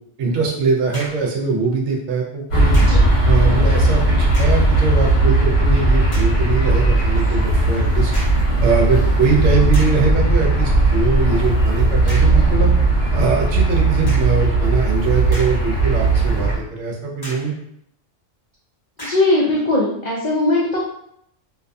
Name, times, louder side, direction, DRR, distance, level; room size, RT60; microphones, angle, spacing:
voice 1, 0.2-2.8 3.3-8.1 8.6-12.7 13.1-17.5, right 4 dB, 70° right, -1 dB, 0.8 m, -22 dB
sound 1, 0.9-1.3 2.7-3.1 4.2-4.7 5.3-5.4 6.1-6.4 8.1-8.5 9.2-9.3 9.7-10.1 12.1-12.5 14.0-14.4 15.1-15.9 16.3-16.4 17.2-17.6 19.0-19.4, equal, 25° left, 0.7 m, -35 dB
sound 2, 2.5-16.6, right 2 dB, 55° left, 1.1 m, -17 dB
voice 2, 19.0-20.8, left 2 dB, 75° left, -4 dB, 0.4 m, -19 dB
2.5 x 2.2 x 2.5 m, 0.72 s
omnidirectional pair, 1.3 m